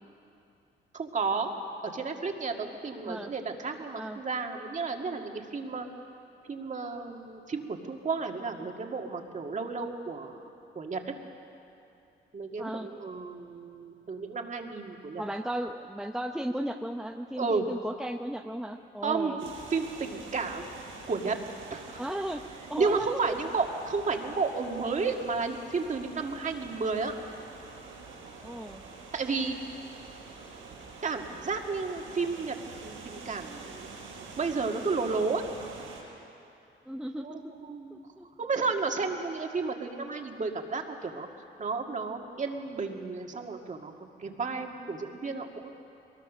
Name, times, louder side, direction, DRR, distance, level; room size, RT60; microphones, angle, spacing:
voice 1, 0.9-1.5 1.8-5.9 6.4-10.4 10.8-11.1 12.3-15.2 17.4-17.6 19.0-20.7 21.1-21.4 21.7-22.0 22.8-27.1 29.1-29.6 31.0-32.5 32.8-33.9 34.2-35.4 37.2-38.0 38.4-41.3 41.6-43.9 44.2-45.7, right 4 dB, 40° right, 3 dB, 2.1 m, -32 dB
voice 2, 12.6-12.9 15.2-19.4 22.0-23.4 28.4-28.8 36.9-37.5 37.9-38.3, right 1 dB, 5° right, 4 dB, 0.8 m, -35 dB
sound 1, 19.4-36.0, right 4 dB, 85° right, 6.9 m, -46 dB
22.5 x 20.5 x 6.3 m, 2.7 s
cardioid pair, 90°, 20 cm